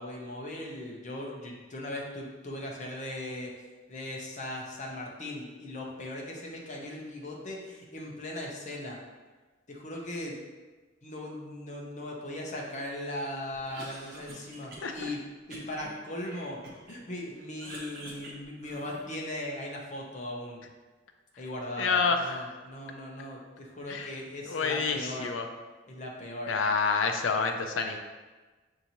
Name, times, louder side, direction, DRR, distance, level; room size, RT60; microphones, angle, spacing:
voice 1, 0.0-3.5 3.9-9.0 9.7-10.4 11.0-15.2 15.5-16.6 16.9-20.6 21.4-25.3 25.9-26.6, left 1 dB, 40° left, -1 dB, 0.8 m, -38 dB
Cough, 13.5-15.1 15.5-17.0 17.3-19.2, right 1 dB, 55° right, 0.9 m, -47 dB
voice 2, 21.8-22.4 23.9-24.1 24.5-25.4 26.5-28.0, left 4 dB, 85° left, 5 dB, 0.5 m, -28 dB
6.4 x 2.7 x 2.9 m, 1.3 s
head